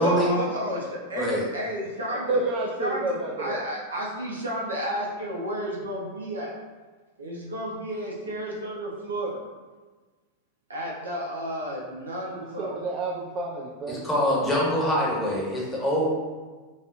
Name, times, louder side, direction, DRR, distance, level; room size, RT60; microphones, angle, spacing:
voice 1, 0.0-2.4 2.8-6.6 7.2-9.4 10.7-12.8, equal, 70° right, -3 dB, 0.9 m, -32 dB
voice 2, 2.1-3.6 12.4-14.0, right 2 dB, 35° right, -2 dB, 0.5 m, -30 dB
voice 3, 13.9-16.1, equal, 10° left, -5 dB, 1.2 m, -24 dB
5.2 x 2.7 x 2.5 m, 1.3 s
figure-of-eight pair, 90°, 0 cm